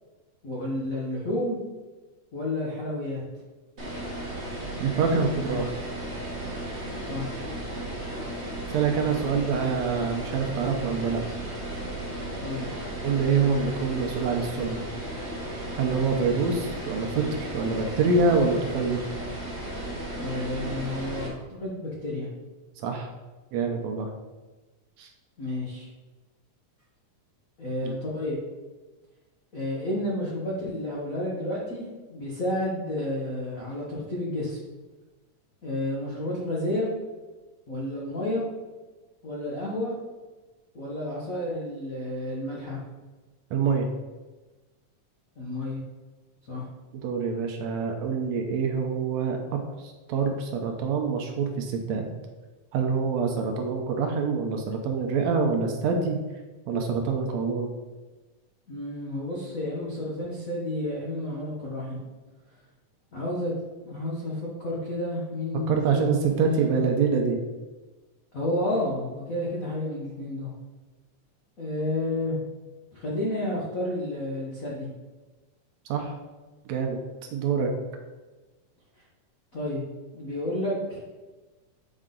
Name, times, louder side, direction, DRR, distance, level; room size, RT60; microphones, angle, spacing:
voice 1, 0.4-1.6 2.3-3.2 5.4-5.6 7.0-7.3 12.4-12.7 20.2-22.3 25.4-25.9 27.6-28.4 29.5-34.6 35.6-36.9 37.7-38.4 39.2-39.9 40.7-42.8 45.4-45.8 46.5-46.6 58.7-62.0 63.1-63.5 63.8-66.8 68.3-70.5 71.6-72.4 72.9-74.9 79.5-79.8 80.1-81.0, left 1 dB, 85° left, -6 dB, 0.7 m, -31 dB
sound 1, 3.8-21.3, right 1 dB, 50° right, 0.7 m, -35 dB
voice 2, 4.8-5.7 8.7-11.2 13.0-14.8 15.7-19.0 22.8-23.1 23.5-24.1 25.0-25.1 27.8-27.9 43.5-43.9 46.9-49.4 49.8-52.1 52.7-56.2 56.7-57.7 65.7-67.4 75.9-76.1 76.7-77.0 77.3-77.7, right 5 dB, 75° right, 3 dB, 1.8 m, -26 dB
7.4 x 4.5 x 3.8 m, 1.2 s
omnidirectional pair, 3.5 m